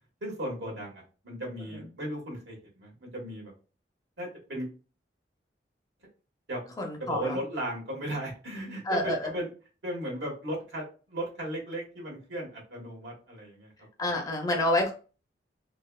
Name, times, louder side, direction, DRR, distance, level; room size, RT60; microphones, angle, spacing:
voice 1, 0.2-3.5 4.2-4.7 6.5-6.6 7.0-9.5 9.8-13.7, right 1 dB, 75° right, -1 dB, 1.4 m, -36 dB
voice 2, 6.8-7.4 8.8-9.3 14.0-14.9, left 1 dB, 20° left, 2 dB, 0.5 m, -28 dB
3.2 x 2.2 x 2.3 m, 0.34 s
head